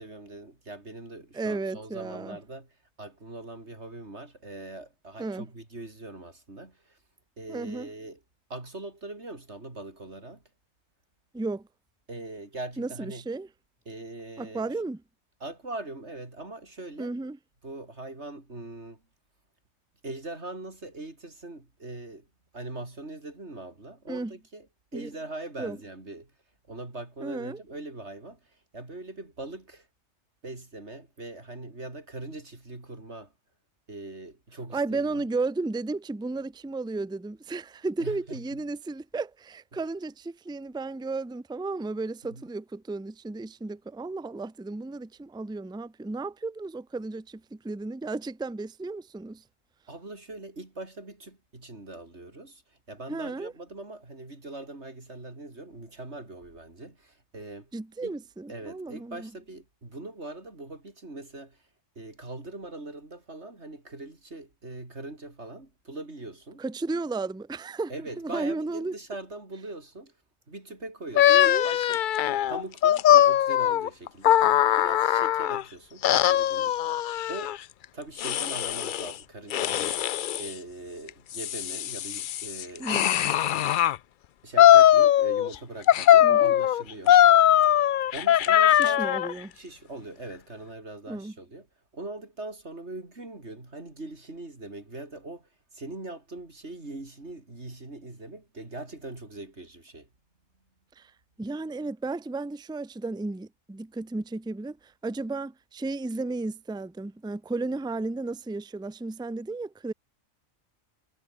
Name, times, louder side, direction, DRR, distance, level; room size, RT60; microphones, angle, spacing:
voice 1, 0.0-7.0 7.4-8.2 8.5-10.4 12.1-13.2 13.9-14.8 15.4-17.1 17.6-19.0 20.0-22.3 22.5-24.7 24.9-26.3 26.7-29.9 30.4-33.3 33.9-35.2 38.0-38.4 42.2-42.4 49.9-57.7 58.0-58.1 58.5-61.6 61.9-66.6 67.9-70.1 70.5-72.0 72.3-77.6 77.9-80.1 80.4-82.9 84.4-87.2 88.1-89.0 89.5-91.7 91.9-100.1, right 2 dB, 55° right, 4.8 m, -41 dB
voice 2, 1.3-2.4 5.2-5.5 7.5-7.9 11.3-11.7 12.8-13.5 14.4-15.0 17.0-17.4 24.1-24.4 24.9-25.1 25.6-25.8 27.2-27.6 34.7-49.4 53.1-53.5 57.7-59.3 66.6-69.0 71.3-71.7 82.8-83.3 86.2-86.5 88.7-89.5 91.1-91.3 101.0-101.1 101.4-109.9, right 3 dB, 5° right, 0.5 m, -34 dB
sound 1, 71.1-75.6 76.0-77.6 78.2-79.1 79.5-80.5 81.1-84.0 84.6-85.5 85.9-89.3, left 11 dB, 70° left, 0.4 m, -21 dB
omnidirectional pair, 1.4 m